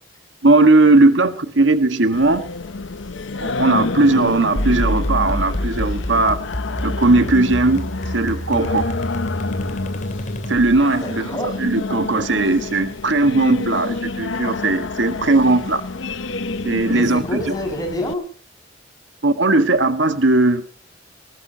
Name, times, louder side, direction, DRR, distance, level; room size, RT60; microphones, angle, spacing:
voice 1, 0.4-2.5 3.4-6.4 6.8-8.9 10.5-15.8 16.6-17.2 19.2-20.7, right 2 dB, 80° right, 9 dB, 1.7 m, -17 dB
Singing, 2.1-18.1, left 3 dB, 90° left, 0.8 m, -29 dB
sound 1, 4.5-10.9, equal, 40° left, 3.0 m, -27 dB
voice 2, 10.9-11.6 16.9-18.3, left 1 dB, 20° left, 2 dB, 6.7 m, -27 dB
20.5 x 19.5 x 2.9 m, 0.41 s
head